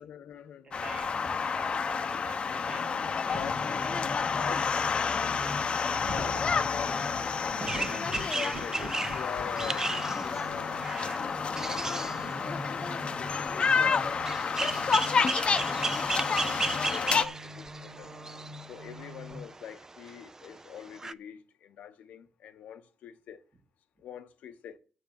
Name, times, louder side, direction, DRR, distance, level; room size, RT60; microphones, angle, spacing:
voice 1, 0.0-0.9 3.3-3.9 4.3-4.8 5.2-5.6 6.1-7.0 7.5-12.9 13.4-18.1 18.7-23.4 24.0-24.8, left 9 dB, 85° left, 0.8 m, -45 dB
voice 2, 0.6-6.9 7.5-7.9 10.0-10.3 11.0-11.2 12.7-12.8 14.6-14.7 15.9-16.1, right 3 dB, 45° right, 2.0 m, -49 dB
sound 1, 0.7-17.2, left 5 dB, 45° left, 0.7 m, -30 dB
sound 2, 2.6-19.4, right 1 dB, 75° right, 2.7 m, -44 dB
sound 3, 7.7-21.1, right 3 dB, 20° right, 0.4 m, -36 dB
7.2 x 6.9 x 7.3 m
cardioid pair, 100°, 2 cm